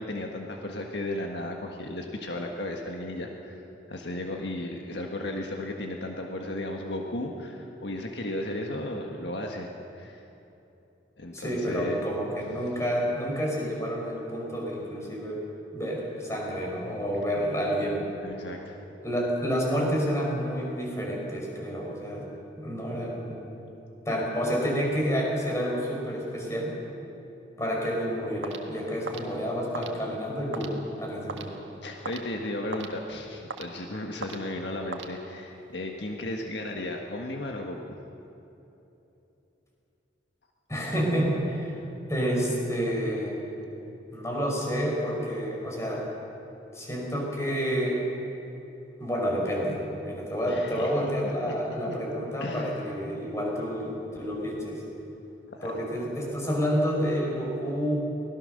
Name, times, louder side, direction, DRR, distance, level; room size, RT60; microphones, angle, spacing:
voice 1, 0.0-3.6 3.9-10.2 11.2-12.1 18.2-18.8 31.8-37.9 50.5-51.6 51.8-52.0 52.4-52.9 55.5-55.7, left 1 dB, 65° left, 1 dB, 1.6 m, -35 dB
voice 2, 11.3-15.4 15.7-18.1 19.0-22.2 22.6-23.4 24.1-26.8 27.6-31.5 40.7-41.8 42.1-43.4 44.1-46.0 46.7-48.0 49.0-54.8 55.6-57.9, equal, 15° left, -2 dB, 5.2 m, -29 dB
sound 1, 28.4-35.7, right 3 dB, 90° right, 1.6 m, -42 dB
24.0 x 18.5 x 6.6 m, 3.0 s
head